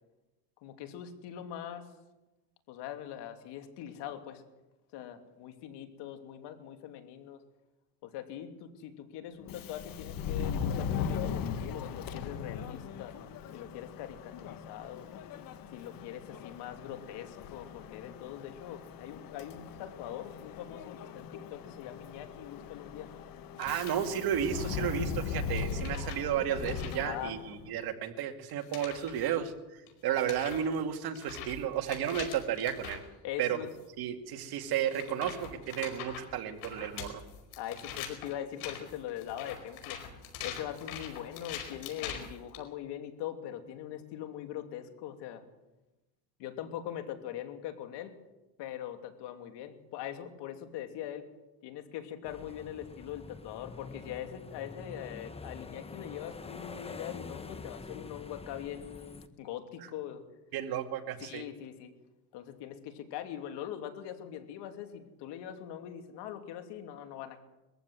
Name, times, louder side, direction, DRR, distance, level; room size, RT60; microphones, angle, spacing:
voice 1, 0.6-1.9 2.7-4.4 4.9-7.4 8.0-13.2 13.5-15.1 15.7-23.1 27.0-27.3 33.2-33.7 37.6-40.0 40.4-45.4 46.4-48.1 48.6-51.3 51.6-60.2 61.2-61.9 62.3-67.4, left 10 dB, 65° left, 6 dB, 2.8 m, -42 dB
Subway metro underground, 9.4-27.8, left 6 dB, 50° left, 1.5 m, -39 dB
sound 1, 23.6-24.0 24.6-25.0 25.5-27.1 28.5-29.3 29.9-30.0 30.2-33.1 33.7-33.9 34.8-42.6, left 8 dB, 85° left, 5.1 m, -44 dB
voice 2, 23.6-33.0 33.4-33.6 34.0-37.1 60.5-61.4, right 9 dB, 55° right, 6 dB, 2.3 m, -33 dB
sound 2, 52.2-59.3, left 4 dB, 15° left, 1.0 m, -46 dB
22.0 x 15.0 x 8.1 m, 1.0 s
cardioid pair, 120°, 44 cm